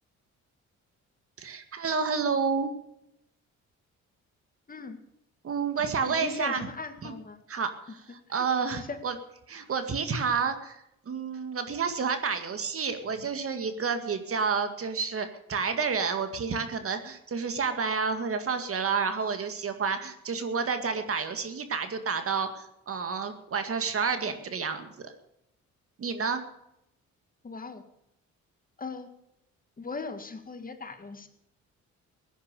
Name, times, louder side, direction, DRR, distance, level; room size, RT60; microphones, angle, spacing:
voice 1, 1.4-2.7 5.4-6.7 7.0-7.2 7.5-9.2 9.5-25.1 26.0-26.4, right 5 dB, 50° right, 8 dB, 2.0 m, -30 dB
voice 2, 6.0-7.4 8.3-8.5 8.8-9.0 27.4-27.8 28.8-29.1 29.8-31.3, left 4 dB, 30° left, 8 dB, 1.9 m, -39 dB
16.5 x 10.0 x 6.8 m, 0.82 s
cardioid pair, 90°, 30 cm